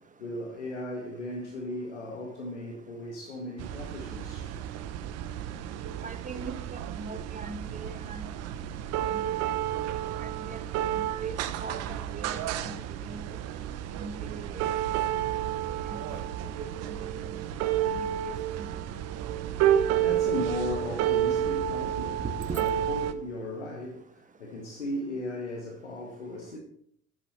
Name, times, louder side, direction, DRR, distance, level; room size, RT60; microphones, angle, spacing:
voice 1, 0.2-4.5 5.8-5.9 6.4-6.5 16.1-16.3 19.9-26.6, left 1 dB, 75° left, 1.8 m, -37 dB
sound 1, 3.6-23.1, right 10 dB, 45° right, 1.0 m, -31 dB
voice 2, 6.0-8.2 9.0-9.3 10.2-10.6 10.9-12.7 13.1-13.2 14.0-14.1 14.5-14.6 15.0-15.1 15.9-16.2 16.6-16.9 17.9-18.3 22.4-22.6, right 4 dB, 20° right, 1.5 m, -41 dB
13.0 x 10.0 x 4.3 m
figure-of-eight pair, 60°, 35 cm